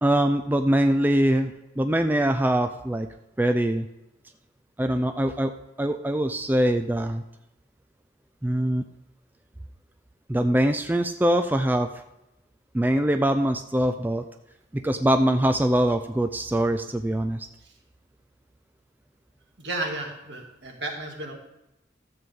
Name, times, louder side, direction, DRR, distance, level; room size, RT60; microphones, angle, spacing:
voice 1, 0.0-3.1 3.4-3.9 4.8-5.5 5.8-7.2 8.4-8.8 10.3-11.9 12.7-14.2 14.7-17.5, right 1 dB, 10° right, 7 dB, 0.4 m, -23 dB
voice 2, 19.6-21.3, right 2 dB, 70° right, 1 dB, 2.0 m, -33 dB
12.5 x 7.7 x 3.7 m, 0.91 s
head